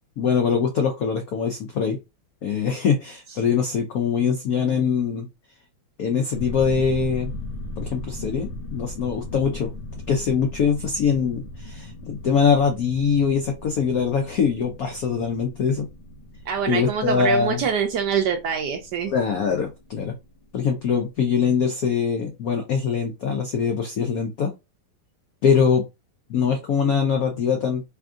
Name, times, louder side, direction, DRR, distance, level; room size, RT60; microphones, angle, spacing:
voice 1, 0.2-2.0 2.4-5.3 6.0-7.3 7.8-9.7 10.1-15.9 16.7-17.6 19.1-20.2 20.5-24.5 25.4-25.8 26.3-27.8, left 6 dB, 85° left, 0.7 m, -23 dB
sound 1, 6.3-20.8 21.1-21.2, left 2 dB, 65° left, 1.4 m, -38 dB
voice 2, 16.5-19.1, right 7 dB, 75° right, 1.0 m, -24 dB
3.4 x 2.5 x 3.5 m
omnidirectional pair, 2.2 m